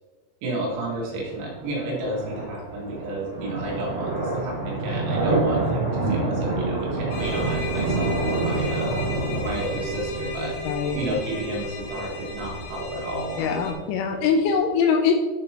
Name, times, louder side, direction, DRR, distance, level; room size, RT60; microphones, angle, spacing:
voice 1, 0.4-9.0 9.3-10.6 11.0-13.4, right 1 dB, 85° right, -4 dB, 4.7 m, -31 dB
sound 1, 0.7-14.6, right 2 dB, 55° right, 2.7 m, -28 dB
sound 2, 7.1-13.7, left 1 dB, 50° left, 2.4 m, -34 dB
voice 2, 10.7-11.0 13.4-15.1, left 6 dB, 80° left, 4 dB, 2.8 m, -22 dB
11.0 x 6.8 x 2.8 m, 1.4 s
omnidirectional pair, 6.0 m